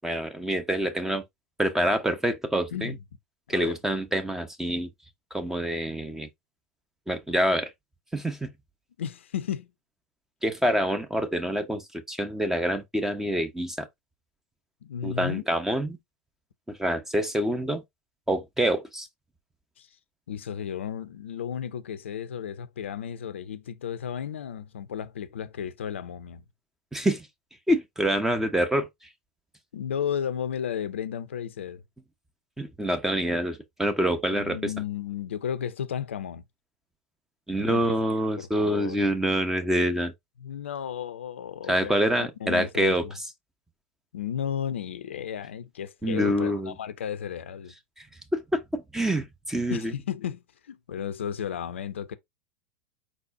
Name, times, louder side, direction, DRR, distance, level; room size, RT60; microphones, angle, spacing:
voice 1, 0.0-1.2 1.6-2.9 3.5-4.9 5.3-6.3 7.1-7.7 8.1-8.5 10.4-13.9 15.0-15.9 16.7-17.8 18.3-19.1 26.9-27.3 27.7-28.9 32.6-34.6 37.5-40.1 41.7-43.0 46.0-46.7 48.3-49.9, equal, 5° right, 0.9 m, -26 dB
voice 2, 9.0-9.7 14.8-15.4 19.8-19.9 20.3-26.4 29.7-31.8 34.3-36.4 37.6-37.9 38.4-39.0 40.4-43.2 44.1-47.7 49.7-52.2, left 8 dB, 70° left, 0.6 m, -34 dB
4.9 x 4.1 x 2.5 m
figure-of-eight pair, 85°, 7 cm